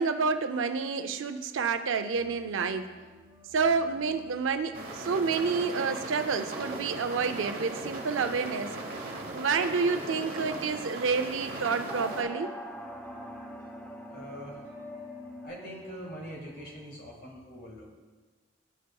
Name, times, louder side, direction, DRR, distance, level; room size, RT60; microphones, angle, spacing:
voice 1, 0.0-2.9 3.5-8.7 9.3-12.5, right 5 dB, 85° right, 9 dB, 0.5 m, -29 dB
sound 1, 2.1-15.5, left 1 dB, 20° right, 1.6 m, -51 dB
sound 2, 4.7-12.2, right 2 dB, 45° right, 1.0 m, -38 dB
sound 3, 11.9-16.9, equal, 5° left, 0.4 m, -45 dB
voice 2, 14.1-14.6 15.4-18.0, equal, 50° left, -3 dB, 1.8 m, -43 dB
12.5 x 4.7 x 2.3 m, 1.3 s
head